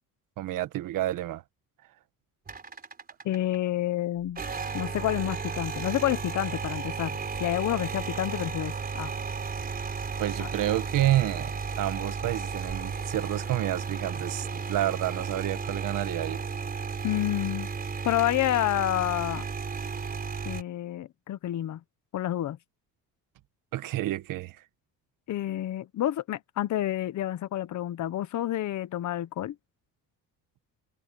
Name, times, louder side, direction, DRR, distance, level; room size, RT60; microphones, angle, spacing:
voice 1, 0.4-1.4 10.2-16.4 23.7-24.6, right 14 dB, 70° right, 1.4 m, -29 dB
sound 1, 2.5-3.6 4.3-20.6, right 5 dB, 25° right, 4.4 m, -34 dB
voice 2, 3.2-4.4 4.7-9.1 10.4-10.5 17.0-17.7 18.0-19.4 20.4-21.8 22.1-22.6 25.3-29.5, left 13 dB, 55° left, 1.2 m, -29 dB
cardioid pair, 145°, 34 cm